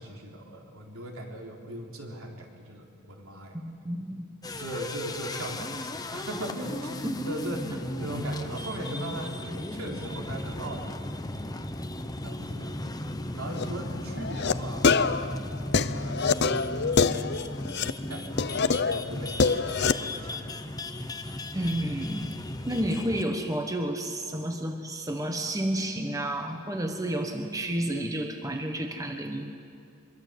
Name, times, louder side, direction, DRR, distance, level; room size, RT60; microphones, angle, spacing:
voice 1, 0.0-3.6 4.6-7.7 8.0-11.1 12.0-12.8 13.3-14.9 15.7-17.1 18.1-18.3 18.6-19.4 19.8-20.7 21.1-21.2, right 1 dB, 75° right, 1 dB, 3.8 m, -39 dB
voice 2, 3.5-4.3 7.0-7.2 21.5-22.3 22.7-29.5, right 1 dB, 15° right, 4 dB, 1.3 m, -31 dB
sound 1, 4.4-23.4, left 1 dB, 15° left, 0.9 m, -36 dB
sound 2, 13.5-13.7 14.2-14.5 14.8-17.9 18.4-20.0, left 5 dB, 50° left, 0.7 m, -25 dB
24.5 x 23.0 x 8.4 m, 2.4 s
head